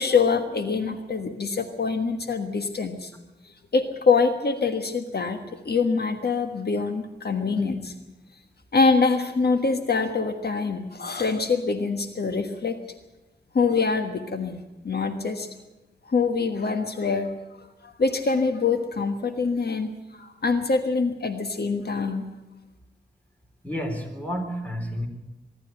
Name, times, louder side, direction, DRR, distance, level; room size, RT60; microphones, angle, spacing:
voice 1, 0.0-3.1 3.7-5.4 5.6-7.9 8.7-12.7 13.5-15.5 16.1-17.3 17.8-22.3, left 4 dB, 65° left, 7 dB, 1.5 m, -24 dB
voice 2, 23.6-25.1, equal, 10° left, 4 dB, 4.0 m, -30 dB
24.0 x 12.0 x 9.1 m, 1.1 s
wide cardioid pair, 95°, 18 cm